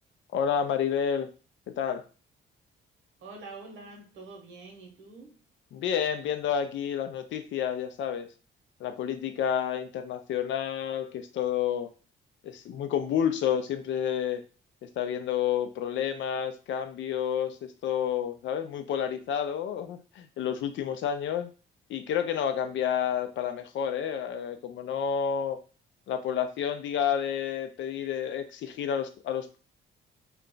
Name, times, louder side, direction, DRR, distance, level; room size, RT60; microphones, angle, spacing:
voice 1, 0.3-1.3 1.8-2.0 5.7-8.3 8.8-11.9 12.4-14.4 14.8-21.5 21.9-25.6 26.1-29.6, left 8 dB, 70° left, 8 dB, 0.5 m, -30 dB
voice 2, 3.2-5.4, right 3 dB, 75° right, 2 dB, 1.0 m, -46 dB
2.4 x 2.2 x 3.8 m, 0.35 s
cardioid pair, 90°, 20 cm